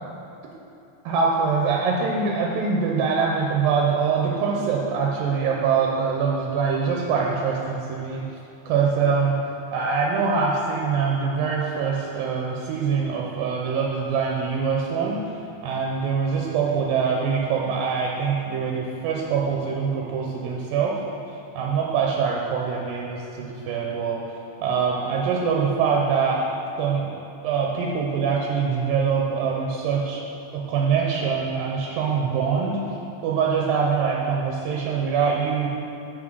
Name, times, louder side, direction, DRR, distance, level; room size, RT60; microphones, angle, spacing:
voice 1, 1.1-8.3 8.7-9.4 9.7-15.2 15.6-21.0 21.5-24.2 24.6-26.4 26.8-27.1 27.4-30.2 30.5-32.8 33.2-35.7, right 5 dB, 85° right, -1 dB, 2.4 m, -24 dB
6.2 x 5.5 x 6.1 m, 2.7 s
omnidirectional pair, 4.1 m